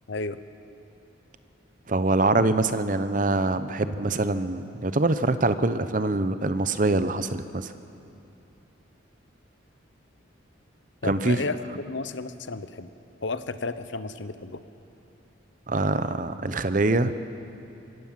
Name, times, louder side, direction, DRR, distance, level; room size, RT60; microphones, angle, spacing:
voice 1, 1.9-7.7 11.0-11.5 15.7-17.2, right 2 dB, 40° right, 12 dB, 0.7 m, -24 dB
voice 2, 11.0-11.6 11.9-12.9 13.2-14.6, left 3 dB, 70° left, 12 dB, 0.9 m, -32 dB
25.5 x 16.0 x 7.5 m, 2.7 s
head